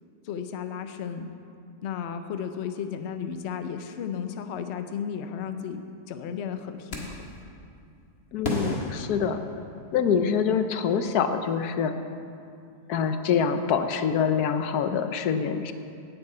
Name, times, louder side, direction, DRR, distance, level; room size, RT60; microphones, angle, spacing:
voice 1, 0.2-1.3 1.8-7.2, left 7 dB, 55° left, 8 dB, 0.8 m, -34 dB
sound 1, 6.9-7.4 8.4-10.0, left 1 dB, 40° left, 1.8 m, -33 dB
voice 2, 8.3-9.4 9.9-12.0 12.9-15.7, left 7 dB, 75° left, 8 dB, 1.2 m, -25 dB
10.5 x 8.0 x 8.4 m, 2.5 s
omnidirectional pair, 1.7 m